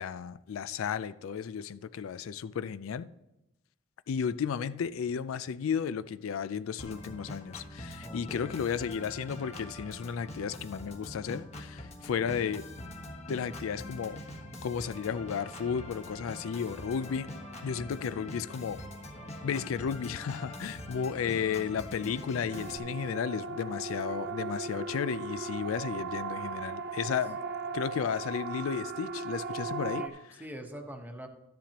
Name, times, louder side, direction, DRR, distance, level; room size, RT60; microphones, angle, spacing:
voice 1, 0.0-3.1 4.1-12.7 13.3-14.2 14.6-17.3 17.6-18.8 19.4-27.4 27.7-30.1, left 7 dB, 75° left, 0.4 m, -33 dB
Organ, 6.8-22.8, left 1 dB, 35° left, 1.2 m, -44 dB
voice 2, 8.0-8.5 29.9-31.3, equal, 10° right, 1.0 m, -44 dB
Siren, 22.5-30.1, right 4 dB, 50° right, 0.5 m, -37 dB
13.0 x 10.5 x 2.9 m
head